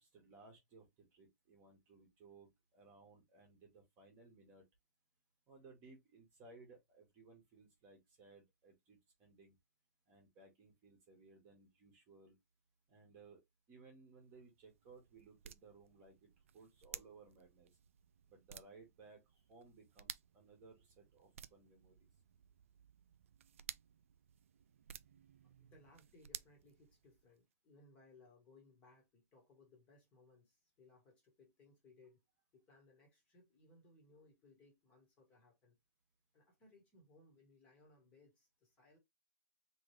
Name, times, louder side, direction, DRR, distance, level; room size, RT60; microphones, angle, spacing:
voice 1, 0.0-4.6 5.5-9.5 10.1-12.4 12.9-13.4 13.7-16.3 16.5-17.7 18.3-22.1, right 3 dB, 20° right, 1.3 m, -61 dB
sound 1, 14.2-27.4, right 9 dB, 55° right, 0.3 m, -56 dB
voice 2, 25.4-32.2 32.5-35.8 36.3-39.0, left 2 dB, 15° left, 1.3 m, -66 dB
3.8 x 3.1 x 3.1 m
hypercardioid pair, 175°, 9 cm